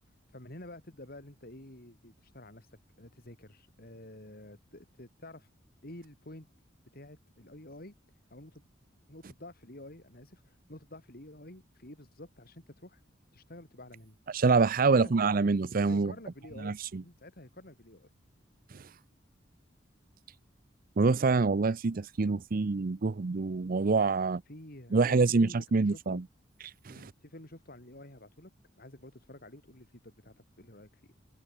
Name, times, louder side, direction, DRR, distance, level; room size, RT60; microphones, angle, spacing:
voice 1, 0.3-5.5 5.8-6.5 6.9-7.9 8.3-8.7 9.1-13.0 13.3-14.2 14.8-15.1 15.8-18.1 24.5-26.2 26.9-28.5 28.8-30.9, left 1 dB, 55° left, 4.5 m, -50 dB
voice 2, 14.3-16.1 16.6-16.7 21.0-24.4 24.9-26.2 26.9-27.1, right 4 dB, 50° right, 0.5 m, -26 dB
head